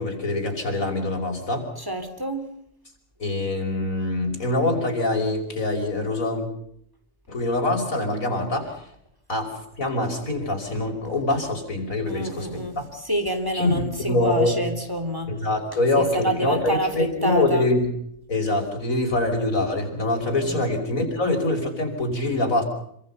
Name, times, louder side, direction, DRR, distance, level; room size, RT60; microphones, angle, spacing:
voice 1, 0.0-1.7 3.2-6.5 7.3-8.7 9.3-12.9 13.5-14.6 15.3-17.9 18.3-22.6, left 2 dB, 90° left, 3 dB, 5.9 m, -24 dB
voice 2, 1.8-2.6 12.1-12.8 13.0-15.4 16.0-17.6 20.4-20.7, right 1 dB, 15° right, 6 dB, 3.5 m, -27 dB
27.5 x 25.5 x 5.6 m, 0.70 s
omnidirectional pair, 1.4 m